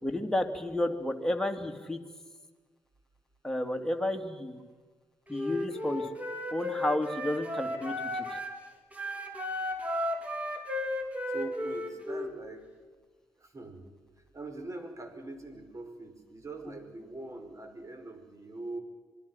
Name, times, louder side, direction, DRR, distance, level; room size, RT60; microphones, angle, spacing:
voice 1, 0.0-2.0 3.4-4.6 5.3-6.1 6.5-8.4, left 1 dB, 5° left, 3 dB, 3.0 m, -31 dB
Wind instrument woodwind instrument, 5.3-8.6 8.9-12.3, left 1 dB, 15° right, 4.5 m, -34 dB
voice 2, 11.0-12.7 13.4-13.9 14.3-18.8, right 2 dB, 35° right, 6 dB, 5.4 m, -43 dB
26.5 x 21.5 x 5.8 m, 1.4 s
hypercardioid pair, 45°, 9 cm